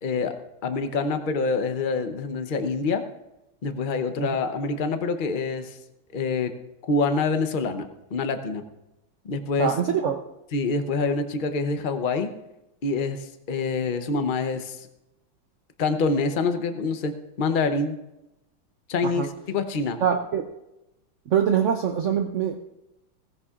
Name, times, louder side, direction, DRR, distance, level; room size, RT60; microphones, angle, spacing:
voice 1, 0.0-0.3 0.6-3.0 3.6-5.8 6.1-6.5 6.9-8.6 9.2-9.7 10.5-12.3 12.8-14.9 15.8-17.9 18.9-20.0, left 4 dB, 60° left, 7 dB, 0.5 m, -26 dB
voice 2, 9.6-10.2 19.0-19.3 20.0-20.4 21.3-22.6, right 8 dB, 80° right, 6 dB, 0.6 m, -24 dB
17.0 x 15.0 x 2.5 m, 0.93 s
omnidirectional pair, 2.1 m